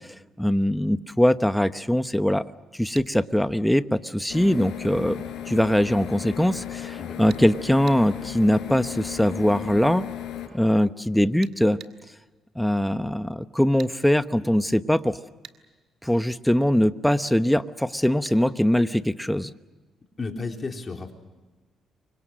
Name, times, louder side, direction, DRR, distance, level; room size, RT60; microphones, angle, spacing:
voice 1, 0.0-2.4 2.8-5.2 5.5-10.0 10.5-11.8 12.6-15.2 16.0-19.5, equal, 5° left, 11 dB, 1.0 m, -22 dB
sound 1, 3.0-3.1 7.3-7.5 7.9-8.0 11.4-12.0 13.8-14.0 15.4-15.6 18.2-18.4, right 9 dB, 70° right, 2.1 m, -44 dB
sound 2, 4.3-10.5, left 11 dB, 75° left, 4.5 m, -35 dB
voice 2, 20.2-21.1, left 4 dB, 35° left, 3 dB, 3.9 m, -33 dB
29.0 x 25.0 x 6.5 m, 1.2 s
cardioid pair, 90°, 0 cm